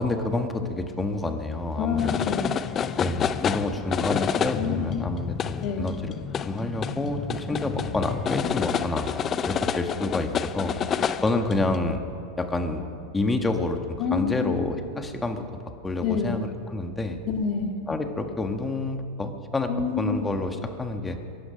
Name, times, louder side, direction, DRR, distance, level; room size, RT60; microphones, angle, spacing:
voice 1, 0.0-2.0 3.0-6.1 6.4-9.1 9.5-10.8 11.2-12.0 12.4-12.8 13.1-13.8 14.1-15.4 15.8-17.2 17.9-19.7 20.0-21.2, left 2 dB, 15° left, 5 dB, 1.6 m, -28 dB
voice 2, 1.8-2.6 4.5-5.0 5.6-5.9 14.0-14.6 16.0-16.4 17.2-17.8 19.7-20.3, left 6 dB, 50° left, 2 dB, 2.0 m, -27 dB
sound 1, 2.0-11.8, left 8 dB, 30° left, 0.6 m, -29 dB
23.0 x 11.5 x 5.2 m, 2.4 s
hypercardioid pair, 105°, 0 cm